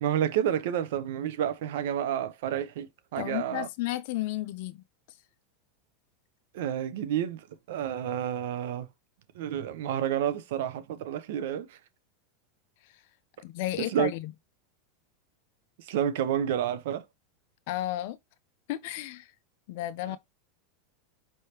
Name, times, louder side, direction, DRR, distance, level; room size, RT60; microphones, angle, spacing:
voice 1, 0.0-2.9 3.1-3.7 6.5-7.4 7.7-8.9 9.4-11.7 13.8-14.1 15.9-17.0, right 10 dB, 70° right, 0.6 m, -29 dB
voice 2, 3.2-4.8 12.9-13.0 13.4-14.3 17.7-18.2 18.7-19.3 19.7-20.2, left 15 dB, 65° left, 0.4 m, -33 dB
4.5 x 3.3 x 2.8 m
supercardioid pair, 115°, 0 cm